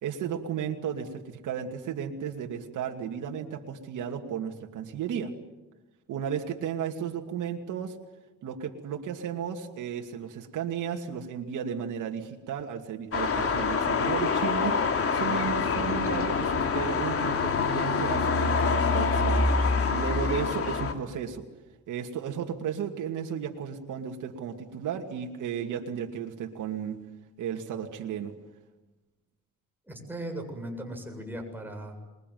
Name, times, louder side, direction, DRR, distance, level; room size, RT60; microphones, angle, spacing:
voice 1, 0.0-5.3 6.1-8.0 8.4-14.8 15.1-19.4 19.9-21.4 21.9-27.0 27.4-28.3, right 8 dB, 80° right, 2 dB, 2.5 m, -34 dB
sound 1, 13.1-20.9, left 4 dB, 50° left, 3.2 m, -26 dB
voice 2, 29.9-32.0, right 1 dB, 5° right, 2 dB, 7.6 m, -38 dB
27.0 x 22.0 x 9.5 m, 1.1 s
cardioid pair, 90°, 30 cm